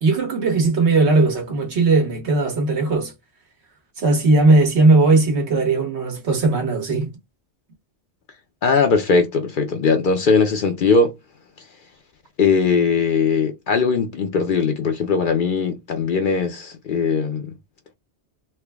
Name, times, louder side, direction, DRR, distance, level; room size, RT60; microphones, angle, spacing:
voice 1, 0.0-3.1 4.0-7.1, right 3 dB, 70° right, 1.4 m, -18 dB
voice 2, 8.6-11.1 12.4-17.5, left 5 dB, 60° left, 0.6 m, -19 dB
3.3 x 2.2 x 3.4 m
omnidirectional pair, 1.2 m